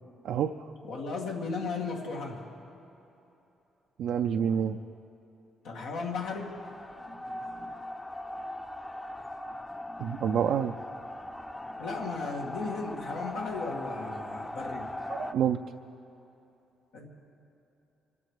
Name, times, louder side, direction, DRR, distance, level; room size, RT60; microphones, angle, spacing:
voice 1, 0.2-0.7 4.0-4.8 10.0-10.7 15.1-15.6, right 8 dB, 75° right, 4 dB, 0.4 m, -28 dB
voice 2, 0.8-2.4 5.6-6.5 11.8-14.9 16.9-17.1, left 4 dB, 90° left, -2 dB, 2.2 m, -35 dB
sound 1, 6.3-15.3, left 1 dB, 15° left, 0.7 m, -40 dB
24.5 x 8.5 x 6.5 m, 3.0 s
cardioid pair, 90°, 0 cm